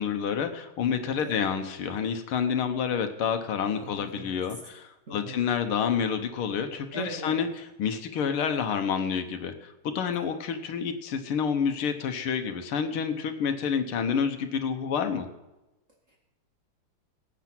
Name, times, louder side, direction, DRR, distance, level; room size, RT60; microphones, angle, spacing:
voice 1, 0.0-15.3, left 7 dB, 85° left, 7 dB, 1.9 m, -29 dB
voice 2, 3.7-4.3 5.1-5.5 6.9-7.4, right 2 dB, 35° right, -1 dB, 2.3 m, -39 dB
18.0 x 8.1 x 6.0 m, 0.98 s
omnidirectional pair, 2.3 m